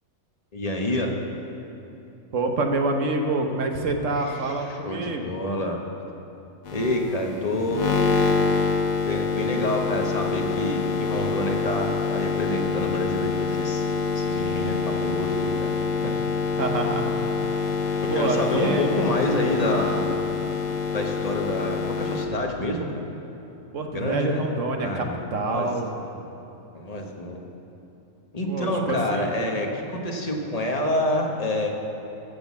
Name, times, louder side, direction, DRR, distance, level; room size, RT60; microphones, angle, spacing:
voice 1, 0.5-1.2 4.3-5.8 6.7-7.9 9.0-13.9 14.1-15.7 16.0-16.1 18.1-20.1 20.9-23.0 23.9-24.4 24.8-25.2 25.5-25.7 26.0-26.2 26.7-27.4 28.3-31.7, left 1 dB, 30° left, 1 dB, 1.1 m, -28 dB
voice 2, 2.3-5.3 16.6-17.1 18.1-18.9 23.7-25.1 25.3-25.9 28.5-29.3, right 3 dB, 65° right, 4 dB, 1.3 m, -26 dB
sound 1, 6.6-22.3, left 5 dB, 80° left, 1.4 m, -26 dB
14.5 x 6.2 x 7.2 m, 2.9 s
omnidirectional pair, 1.5 m